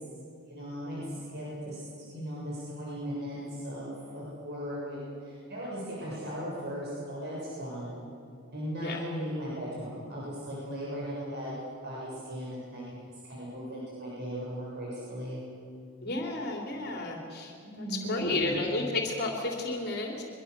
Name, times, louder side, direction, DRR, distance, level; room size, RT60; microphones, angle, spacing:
voice 1, 0.5-1.8 2.1-7.9 8.5-11.6 11.8-12.8 13.2-15.4 17.6-18.5, equal, 50° right, -6 dB, 7.1 m, -37 dB
voice 2, 16.0-20.2, left 2 dB, 50° left, 0 dB, 3.4 m, -32 dB
24.0 x 23.5 x 6.8 m, 2.5 s
head